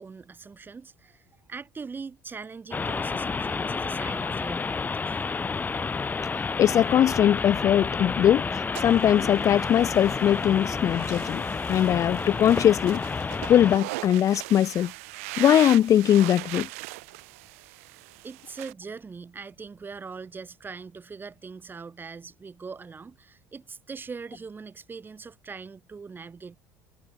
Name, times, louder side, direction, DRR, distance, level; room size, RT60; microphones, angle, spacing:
voice 1, 0.0-5.2 18.2-26.6, right 5 dB, 25° right, 3.3 m, -41 dB
sound 1, 2.7-13.8, left 4 dB, 25° left, 1.0 m, -30 dB
voice 2, 6.6-11.4 11.7-13.0 13.5-14.9 15.4-16.7, left 10 dB, 45° left, 0.4 m, -21 dB
sound 2, 8.8-18.7, right 24 dB, 85° right, 0.9 m, -39 dB
supercardioid pair, 85°, 7 cm